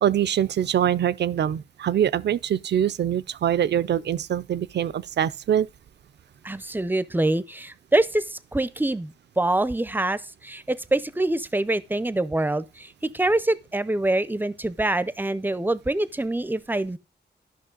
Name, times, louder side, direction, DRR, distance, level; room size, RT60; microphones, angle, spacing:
voice 1, 0.0-5.7, right 10 dB, 70° right, 0.4 m, -24 dB
voice 2, 6.4-17.0, right 2 dB, 10° right, 0.5 m, -25 dB
12.0 x 5.7 x 3.8 m
wide cardioid pair, 100°, 18 cm